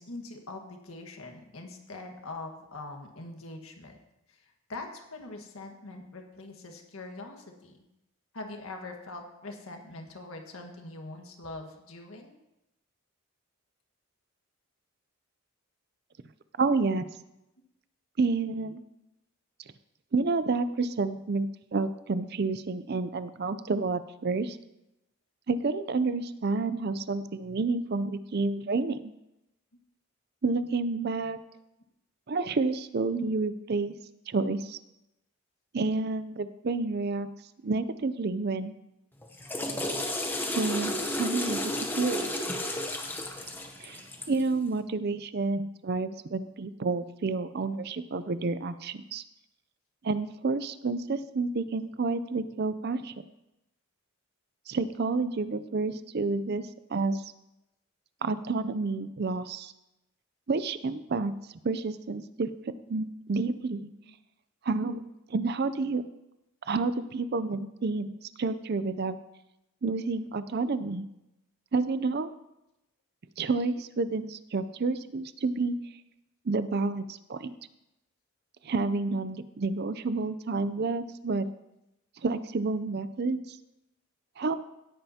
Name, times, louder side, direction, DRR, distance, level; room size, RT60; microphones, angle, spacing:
voice 1, 0.0-3.9 4.3-7.8 8.3-12.3 64.0-64.1, left 2 dB, 75° left, 3 dB, 1.6 m, -43 dB
voice 2, 16.6-17.1 18.2-18.8 20.1-24.6 25.5-29.1 30.4-31.4 32.3-33.9 34.3-34.8 35.7-37.3 37.6-38.7 40.5-41.6 42.0-42.4 43.8-44.0 44.3-49.2 50.0-53.1 54.7-56.6 56.9-57.2 58.2-59.7 60.5-61.3 61.6-63.9 64.6-66.0 66.7-69.2 69.8-71.1 71.7-72.3 73.4-75.7 76.5-77.5 78.6-81.5 82.2-83.6 84.4-84.6, right 3 dB, 45° right, 14 dB, 0.5 m, -29 dB
Water / Toilet flush, 39.2-44.5, left 1 dB, 10° left, 0.8 m, -32 dB
17.0 x 8.8 x 2.8 m, 0.91 s
head